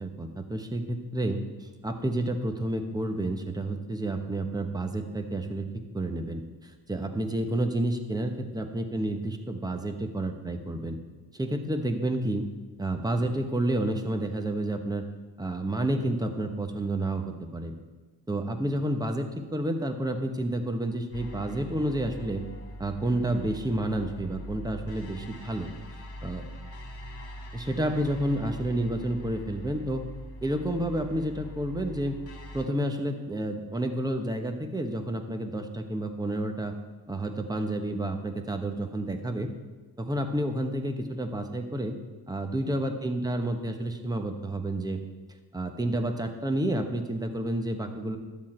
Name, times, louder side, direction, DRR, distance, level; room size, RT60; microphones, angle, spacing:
voice 1, 0.0-5.7 5.9-11.0 11.3-12.4 12.8-15.0 15.4-17.8 18.3-22.4 22.8-25.7 26.2-26.4 27.5-30.1 30.4-32.2 32.5-36.7 37.1-39.5 40.0-42.0 42.3-45.0 45.5-48.2, right 1 dB, 10° right, 5 dB, 1.0 m, -30 dB
sound 1, 21.1-32.7, equal, 35° left, 1.8 m, -42 dB
12.5 x 7.3 x 4.4 m, 1.3 s
cardioid pair, 105°, 42 cm